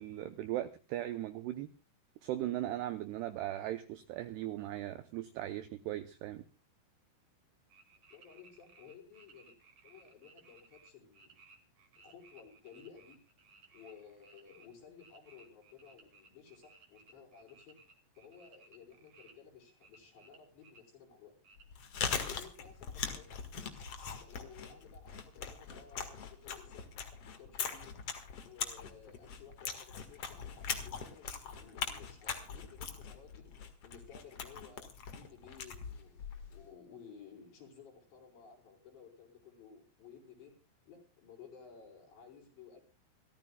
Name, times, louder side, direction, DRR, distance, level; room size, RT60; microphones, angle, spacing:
voice 1, 0.0-1.7 2.2-6.4, right 13 dB, 85° right, 10 dB, 2.3 m, -38 dB
sound 1, 7.7-14.7 15.0-19.3 19.8-20.8 21.4-21.6, right 4 dB, 45° right, 2.7 m, -61 dB
voice 2, 8.1-9.5 9.8-11.3 12.0-13.2 13.7-17.8 18.2-21.4 22.0-23.4 24.2-26.9 27.4-27.9 28.4-30.4 30.8-33.5 33.8-40.5 40.9-42.8, left 6 dB, 60° left, 1 dB, 6.7 m, -56 dB
Chewing mastication, 21.6-36.7, left 6 dB, 75° left, 1.3 m, -41 dB
28.0 x 14.0 x 2.3 m, 0.32 s
omnidirectional pair, 5.8 m